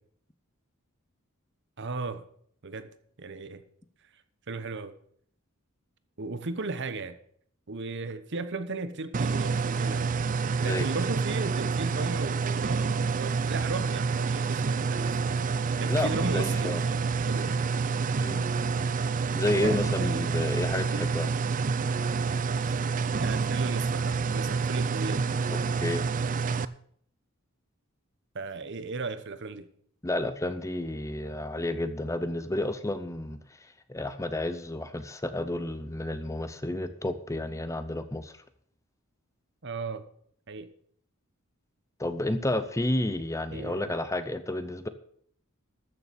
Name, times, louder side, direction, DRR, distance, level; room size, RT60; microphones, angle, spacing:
voice 1, 1.8-2.2 2.6-2.9 3.2-3.6 4.5-4.9 6.2-7.2 7.7-10.1 10.6-17.7 19.6-20.4 20.7-21.1 22.6-25.2 28.3-29.7 39.6-40.0 40.5-40.7 43.5-43.9, right 3 dB, 55° right, 1.0 m, -36 dB
sound 1, 9.1-26.6, right 5 dB, 40° right, 0.5 m, -28 dB
voice 2, 15.9-16.8 18.2-18.5 19.3-21.3 25.5-26.0 30.0-33.4 33.9-38.4 42.0-44.9, left 1 dB, 15° left, 0.7 m, -31 dB
13.5 x 6.9 x 6.9 m
head